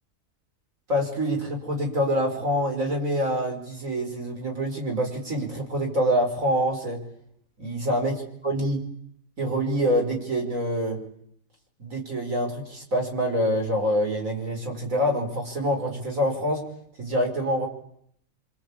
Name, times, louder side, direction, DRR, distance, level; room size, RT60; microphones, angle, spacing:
voice 1, 0.9-7.0 7.6-8.2 8.4-8.8 9.4-11.0 11.8-16.6 17.0-17.7, equal, 65° right, 2 dB, 5.8 m, -26 dB
26.5 x 25.5 x 8.6 m, 0.71 s
omnidirectional pair, 1.5 m